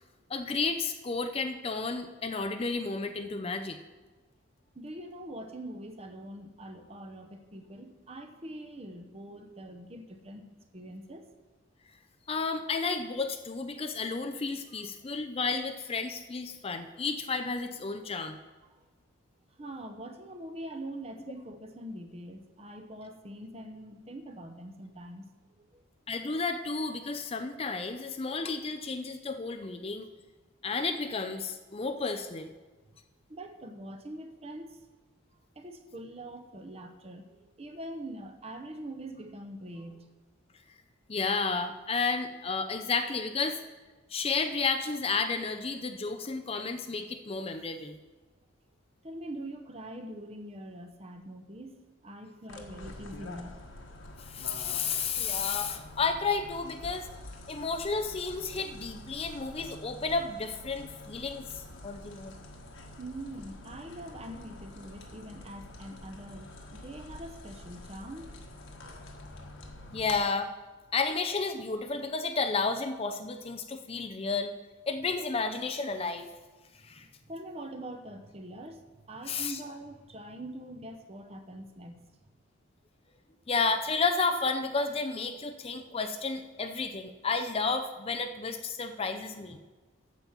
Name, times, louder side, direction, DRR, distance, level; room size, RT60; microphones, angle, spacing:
voice 1, 0.3-3.8 12.3-18.4 26.1-30.1 30.6-32.5 41.1-43.6 44.1-48.0 52.6-52.7 54.2-57.1 57.5-62.3 69.9-70.5 70.9-74.5 74.9-76.3 76.8-77.1 79.3-79.6 83.5-89.6, left 4 dB, 25° left, 7 dB, 0.5 m, -32 dB
voice 2, 4.7-11.3 14.7-14.8 18.7-18.8 19.6-25.3 25.6-25.8 33.3-34.8 35.6-40.1 49.0-51.7 52.0-53.6 63.0-68.3 76.9-82.0, right 1 dB, 30° right, 6 dB, 0.9 m, -43 dB
sound 1, 52.5-70.2, left 1 dB, 65° left, 1.4 m, -47 dB
8.9 x 7.4 x 7.3 m, 1.3 s
head